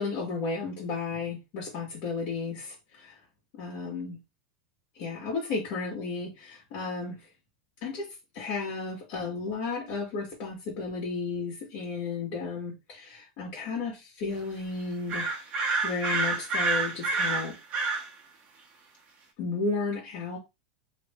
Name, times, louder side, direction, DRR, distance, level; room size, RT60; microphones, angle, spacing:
voice 1, 0.0-3.1 3.6-4.2 5.0-7.2 7.8-8.1 8.3-15.3 15.8-17.6 19.4-20.4, left 4 dB, 50° left, 1.8 m, -33 dB
sound 1, 15.1-18.1, right 4 dB, 30° right, 1.3 m, -28 dB
3.4 x 2.7 x 3.6 m
supercardioid pair, 140°, 4 cm